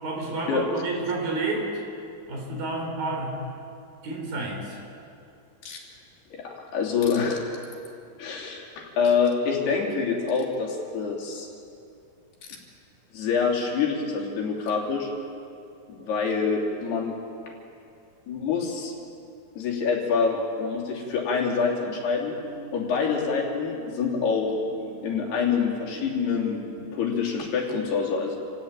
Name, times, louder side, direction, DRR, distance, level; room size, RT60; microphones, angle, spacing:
voice 1, 0.0-1.8 2.3-3.4 4.0-4.8, right 2 dB, 60° right, 0 dB, 6.3 m, -30 dB
voice 2, 6.3-7.4 8.2-11.5 12.5-12.6 13.1-15.1 15.9-17.2 18.3-18.9 19.6-22.3 22.7-24.6 25.0-26.6 26.9-28.4, left 5 dB, 75° left, -1 dB, 5.2 m, -26 dB
sound 1, 22.1-27.3, right 4 dB, 40° right, 7.2 m, -43 dB
28.0 x 16.5 x 8.9 m, 2.5 s
omnidirectional pair, 4.7 m